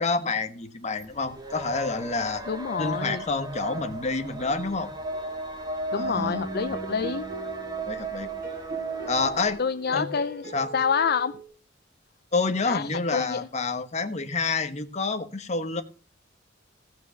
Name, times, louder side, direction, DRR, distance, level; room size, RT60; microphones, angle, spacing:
voice 1, 0.0-2.4 2.8-4.9 5.9-6.4 7.8-8.3 9.1-9.6 9.9-10.1 10.5-10.7 12.3-15.8, left 3 dB, 35° left, 8 dB, 1.2 m, -28 dB
sound 1, 1.0-9.6, right 2 dB, 20° right, 1.8 m, -35 dB
voice 2, 2.5-3.2 5.9-7.2 9.6-10.4 10.7-11.4 12.7-13.5, left 6 dB, 50° left, 11 dB, 0.5 m, -27 dB
sound 2, 6.1-11.4, equal, 45° right, 4.8 m, -39 dB
15.5 x 6.2 x 6.5 m, 0.36 s
head